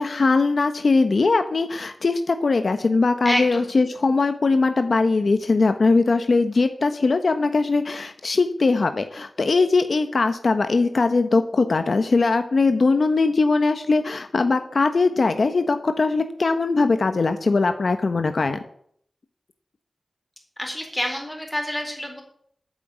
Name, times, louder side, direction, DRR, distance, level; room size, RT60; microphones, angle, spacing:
voice 1, 0.0-18.6, left 3 dB, 65° left, 8 dB, 0.9 m, -20 dB
voice 2, 3.2-3.6 20.6-22.2, equal, 10° left, 2 dB, 4.2 m, -27 dB
9.2 x 7.4 x 9.2 m, 0.65 s
wide cardioid pair, 70°, 0 cm